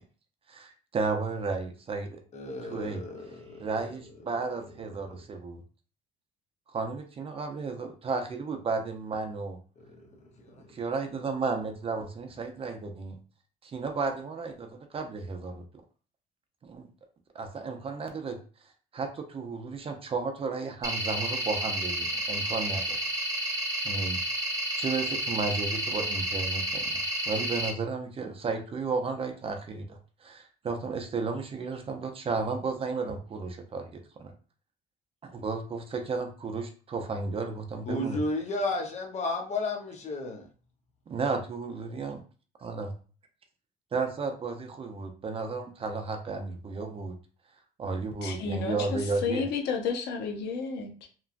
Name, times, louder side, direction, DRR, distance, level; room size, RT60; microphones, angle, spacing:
voice 1, 0.5-2.2 2.6-3.0 3.6-5.6 6.7-9.6 10.7-13.2 13.6-15.6 16.6-16.9 17.3-18.4 18.9-23.0 23.8-24.2 24.8-34.3 35.2-38.2 41.1-42.2 42.6-42.9 43.9-47.1 47.8-49.5, right 4 dB, 35° right, 0.5 m, -33 dB
voice 2, 2.3-3.7 9.8-10.1 10.4-10.6 37.9-40.5, left 2 dB, 40° left, 0.8 m, -33 dB
sound 1, 20.8-27.7, right 1 dB, 20° right, 1.0 m, -31 dB
voice 3, 48.2-51.1, left 5 dB, 80° left, 0.7 m, -32 dB
3.0 x 2.3 x 2.4 m
cardioid pair, 110°, 17 cm